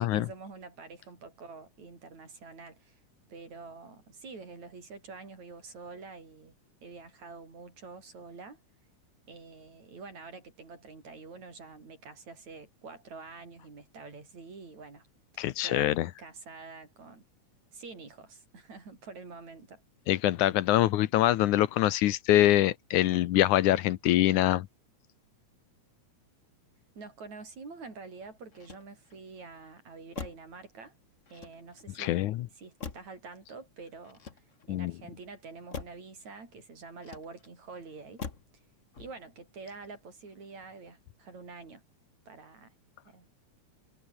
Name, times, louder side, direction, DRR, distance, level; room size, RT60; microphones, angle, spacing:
voice 1, 0.0-3.0 3.3-8.6 9.3-15.1 15.6-17.3 17.7-19.8 27.0-31.0 31.3-34.2 34.7-38.2 39.0-41.8 42.3-42.8 43.1-43.3, right 4 dB, 60° right, 7.0 m, -47 dB
voice 2, 15.4-16.1 20.1-24.7 32.0-32.5 34.7-34.9, left 14 dB, 80° left, 2.3 m, -24 dB
Motor vehicle (road), 28.5-29.3 30.1-30.6 31.3-31.9 32.8-33.3 34.0-34.8 35.7-36.1 37.0-37.6 38.2-38.6 38.9-39.4, left 5 dB, 30° left, 1.5 m, -43 dB
omnidirectional pair, 3.6 m